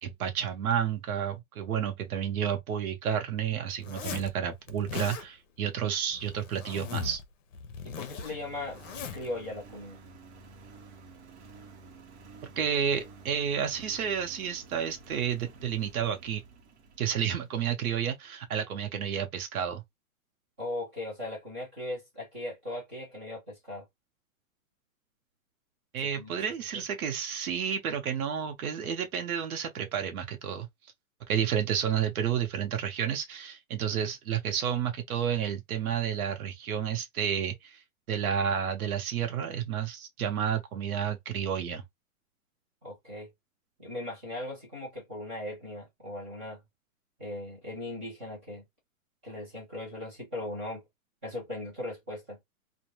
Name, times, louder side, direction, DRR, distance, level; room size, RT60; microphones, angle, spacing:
voice 1, 0.0-7.2 12.6-16.4 17.0-19.8 25.9-30.7 31.3-41.8, right 8 dB, 85° right, 0.8 m, -31 dB
Zipper (clothing), 3.8-4.3 4.7-5.3 6.1-7.2 7.5-9.3, left 7 dB, 60° left, 0.7 m, -39 dB
voice 2, 7.8-8.8 9.1-10.0 20.6-23.8 26.0-26.4 26.7-26.8 42.8-43.3 43.8-46.6 47.2-48.6 49.2-50.8 51.2-52.4, left 1 dB, 10° right, 0.4 m, -38 dB
Engine, 8.3-17.8, right 4 dB, 50° right, 0.9 m, -51 dB
2.5 x 2.2 x 2.9 m
hypercardioid pair, 170°, 43 cm